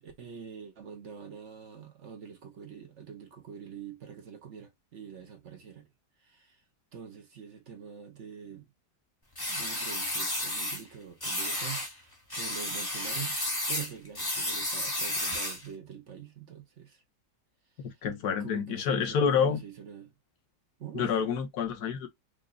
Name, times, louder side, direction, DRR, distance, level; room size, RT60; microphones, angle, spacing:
voice 1, 0.0-5.9 6.2-6.6 6.9-8.7 9.5-13.4 13.7-17.0 17.9-18.0 18.4-20.1 20.8-21.2, right 8 dB, 50° right, 1.0 m, -45 dB
sound 1, 9.4-10.8 11.2-11.9 12.3-15.7, left 1 dB, 15° left, 1.1 m, -32 dB
voice 2, 17.8-19.6 20.9-22.1, left 7 dB, 70° left, 1.4 m, -28 dB
5.0 x 2.5 x 2.3 m
omnidirectional pair, 1.8 m